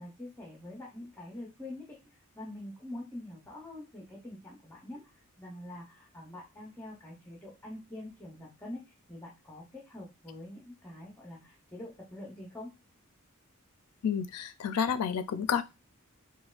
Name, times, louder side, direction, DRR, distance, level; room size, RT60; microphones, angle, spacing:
voice 1, 0.0-2.0 2.3-12.7, left 1 dB, 10° left, -3 dB, 0.6 m, -45 dB
voice 2, 14.0-15.6, left 7 dB, 90° left, 12 dB, 0.4 m, -30 dB
4.2 x 2.2 x 2.4 m, 0.26 s
head